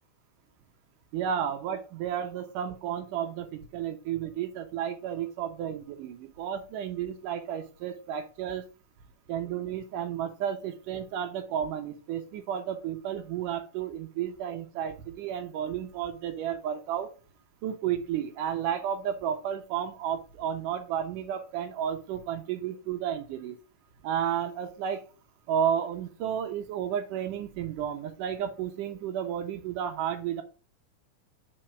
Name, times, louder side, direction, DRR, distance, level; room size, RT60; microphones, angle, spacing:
voice 1, 1.1-8.7 9.3-17.1 17.6-23.6 24.0-25.0 25.5-30.4, right 9 dB, 75° right, 7 dB, 2.3 m, -32 dB
5.5 x 4.6 x 6.2 m, 0.34 s
omnidirectional pair, 4.1 m